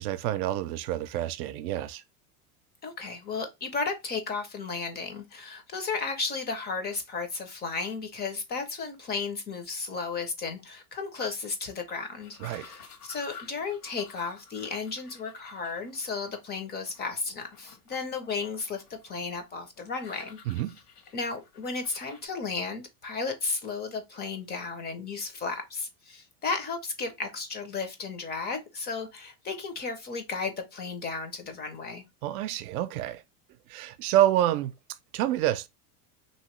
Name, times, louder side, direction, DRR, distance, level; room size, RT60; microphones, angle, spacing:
voice 1, 0.0-2.0 12.4-12.7 20.5-20.7 32.2-33.2 33.7-34.7 35.1-35.7, right 13 dB, 75° right, 0.6 m, -27 dB
voice 2, 2.8-20.4 21.1-32.0, left 4 dB, 25° left, 0.5 m, -34 dB
sound 1, 12.2-22.3, left 6 dB, 85° left, 1.4 m, -52 dB
2.9 x 2.8 x 3.0 m
supercardioid pair, 140°, 45 cm